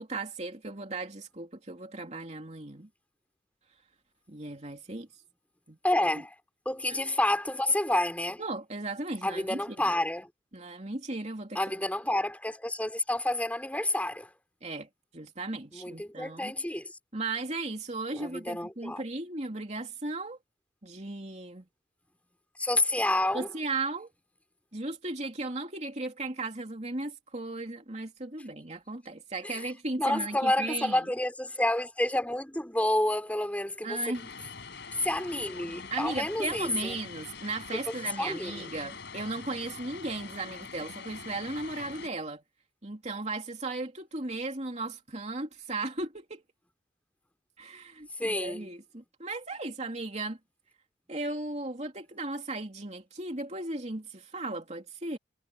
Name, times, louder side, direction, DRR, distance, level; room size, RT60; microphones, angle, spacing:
voice 1, 0.0-2.9 4.3-5.1 5.7-5.8 6.9-7.1 8.4-9.6 9.9-10.0 10.5-11.6 14.6-16.5 17.1-20.4 20.8-21.6 23.3-24.1 24.7-31.1 33.8-34.3 35.9-42.4 42.8-46.4 47.6-50.4 51.1-55.2, right 2 dB, 35° right, 2.9 m, -36 dB
voice 2, 5.8-6.3 6.6-8.4 9.2-10.3 11.5-14.3 15.7-16.9 18.1-19.0 22.6-23.5 29.4-29.6 30.0-34.2 34.9-37.0 37.9-38.7 48.2-48.7, left 1 dB, 10° left, 4.5 m, -29 dB
Vehicle, 34.1-42.1, left 5 dB, 60° left, 5.0 m, -44 dB
head